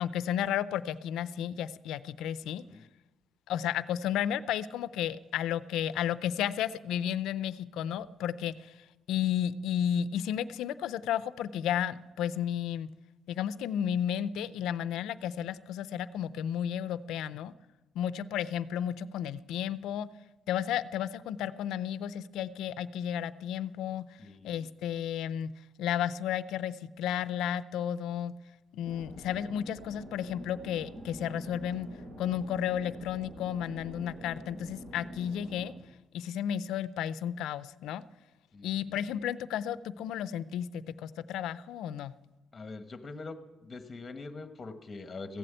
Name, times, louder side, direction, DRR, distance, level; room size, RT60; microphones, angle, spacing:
voice 1, 0.0-2.6 3.5-8.7 9.1-12.9 13.3-17.5 18.0-20.1 20.5-24.1 24.4-25.5 25.8-28.3 28.7-31.9 32.2-35.7 36.1-38.0 38.6-42.1, left 10 dB, 85° left, 16 dB, 0.4 m, -33 dB
voice 2, 24.2-24.6 38.5-38.7 42.5-43.4 43.6-45.4, left 3 dB, 30° left, 9 dB, 1.2 m, -43 dB
sound 1, 28.8-35.7, equal, 50° right, 6.1 m, -46 dB
15.5 x 7.7 x 9.1 m, 1.1 s
cardioid pair, 90°, 0 cm